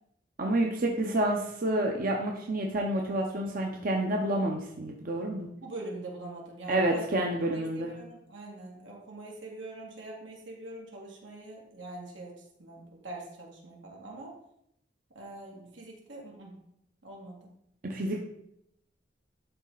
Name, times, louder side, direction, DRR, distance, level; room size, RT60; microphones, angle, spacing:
voice 1, 0.4-5.5 6.7-8.0 17.8-18.2, right 1 dB, 50° right, 1 dB, 0.8 m, -29 dB
voice 2, 5.6-7.1 7.5-14.3 15.1-16.5 17.0-17.5, right 2 dB, 90° right, -2 dB, 2.3 m, -43 dB
11.5 x 4.1 x 3.9 m, 0.77 s
head